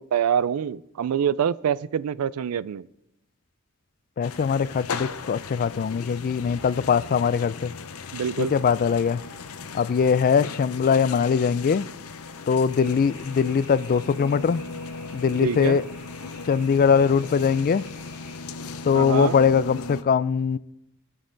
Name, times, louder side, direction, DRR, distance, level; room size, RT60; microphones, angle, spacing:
voice 1, 0.0-2.9 8.1-8.5 15.4-15.8 18.9-19.4, right 8 dB, 85° right, 19 dB, 0.4 m, -25 dB
sound 1, 4.2-20.0, left 4 dB, 80° left, 0.7 m, -38 dB
voice 2, 4.2-7.7 8.4-9.2 9.7-11.9 12.5-14.6 15.1-15.8 16.5-17.8 18.8-20.6, left 6 dB, 40° left, 18 dB, 0.3 m, -21 dB
sound 2, 12.7-18.4, equal, 10° right, 3.5 m, -50 dB
19.0 x 6.5 x 3.9 m, 0.87 s
head